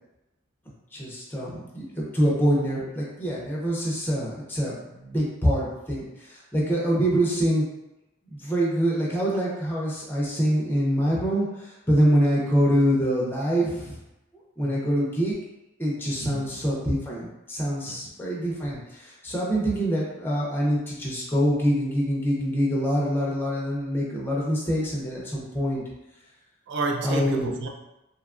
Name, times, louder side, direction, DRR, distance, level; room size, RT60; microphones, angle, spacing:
voice 1, 0.9-7.6 8.3-14.0 14.6-15.4 15.8-25.8 27.0-27.5, equal, 10° left, -5 dB, 0.5 m, -25 dB
voice 2, 14.6-15.0 16.2-16.6 17.8-18.1 26.7-27.7, right 3 dB, 55° right, 1 dB, 0.4 m, -31 dB
2.8 x 2.2 x 2.3 m, 0.96 s
head